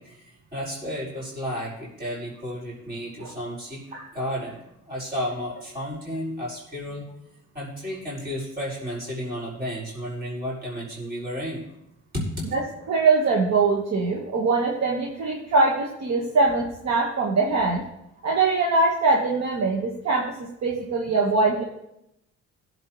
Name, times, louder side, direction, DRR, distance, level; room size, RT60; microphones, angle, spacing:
voice 1, 0.0-4.6 4.9-7.0 7.5-11.7 12.1-12.4, equal, 35° right, -5 dB, 5.0 m, -32 dB
voice 2, 12.9-17.8 18.2-21.6, right 3 dB, 60° right, 0 dB, 1.5 m, -22 dB
17.0 x 7.8 x 3.1 m, 0.83 s
cardioid pair, 90°, 30 cm